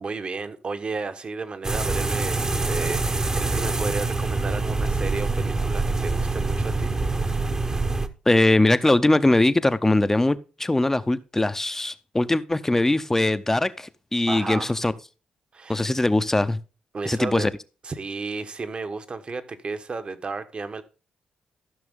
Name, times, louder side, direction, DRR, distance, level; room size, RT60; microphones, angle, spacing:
voice 1, 0.0-6.9 14.3-14.8 15.5-15.9 16.9-17.5 17.8-20.8, right 4 dB, 45° right, 1.2 m, -33 dB
sound 1, 1.6-8.1, right 3 dB, 25° right, 1.0 m, -25 dB
voice 2, 8.3-14.9 15.7-16.6 17.1-17.5, left 2 dB, 15° left, 0.7 m, -21 dB
14.5 x 6.1 x 3.7 m
cardioid pair, 70°, 3 cm